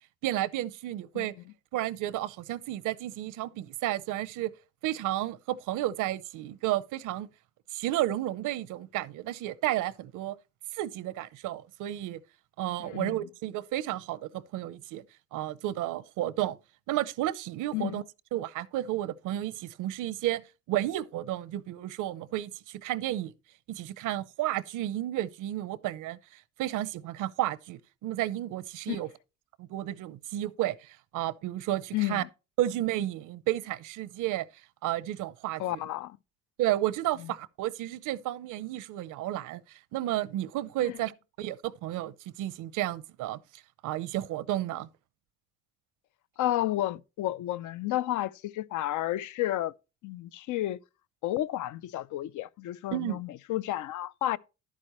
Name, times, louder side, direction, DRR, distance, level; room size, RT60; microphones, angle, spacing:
voice 1, 0.2-1.3 1.7-4.5 4.8-7.3 7.7-10.4 10.7-12.2 12.6-15.0 15.3-16.6 16.9-18.0 18.3-20.4 20.7-23.3 23.7-29.1 29.6-32.2 32.6-34.4 34.8-35.8 36.6-41.1 41.4-43.4 43.8-44.9 52.9-53.2, right 14 dB, 85° right, 0.7 m, -32 dB
voice 2, 12.8-13.2 17.7-18.0 28.9-29.0 31.9-32.3 35.6-36.2 40.8-40.9 46.4-49.7 50.0-50.8 51.2-54.4, left 14 dB, 80° left, 0.5 m, -31 dB
11.0 x 8.4 x 3.0 m
cardioid pair, 90°, 30 cm